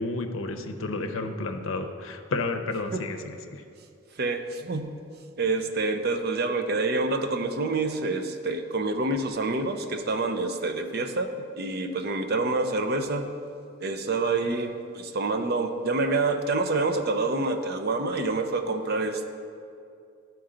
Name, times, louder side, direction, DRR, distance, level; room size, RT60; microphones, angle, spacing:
voice 1, 0.0-3.6, left 3 dB, 85° left, 6 dB, 0.6 m, -31 dB
voice 2, 4.2-4.9 5.4-13.3 13.8-19.3, right 3 dB, 50° right, 6 dB, 0.6 m, -27 dB
12.5 x 4.5 x 3.8 m, 2.4 s
head